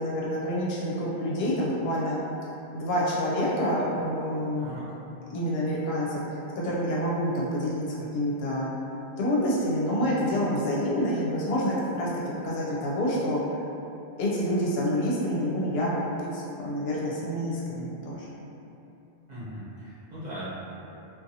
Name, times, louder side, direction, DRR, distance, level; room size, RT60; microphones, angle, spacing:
voice 1, 0.0-2.2 2.7-4.7 5.3-6.2 6.6-8.7 9.2-12.1 12.4-13.4 14.2-18.3, equal, 70° left, -5 dB, 0.8 m, -27 dB
voice 2, 19.3-20.5, equal, 45° right, -13 dB, 1.0 m, -39 dB
2.6 x 2.4 x 2.6 m, 2.9 s
omnidirectional pair, 1.1 m